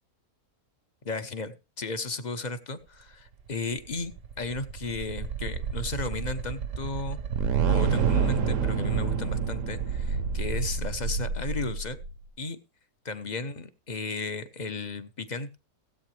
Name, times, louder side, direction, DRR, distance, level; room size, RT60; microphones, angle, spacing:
voice 1, 1.0-7.2 7.7-12.0 12.4-12.6 13.0-15.6, left 3 dB, 35° left, 11 dB, 0.9 m, -35 dB
sound 1, 3.8-12.2, right 6 dB, 60° right, 1.2 m, -28 dB
16.5 x 8.5 x 3.3 m, 0.30 s
omnidirectional pair, 1.6 m